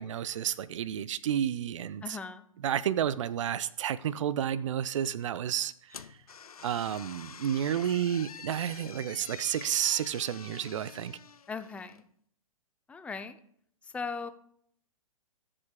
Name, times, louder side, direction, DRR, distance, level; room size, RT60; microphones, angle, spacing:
voice 1, 0.0-2.2 2.6-6.2 6.6-11.2, right 10 dB, 60° right, 0.5 m, -31 dB
voice 2, 2.0-2.5 11.5-12.0 12.9-13.4 13.8-14.3, left 5 dB, 5° left, 0.5 m, -38 dB
sound 1, 5.9-12.1, left 7 dB, 80° left, 0.4 m, -47 dB
18.5 x 7.5 x 2.2 m
figure-of-eight pair, 115°, 18 cm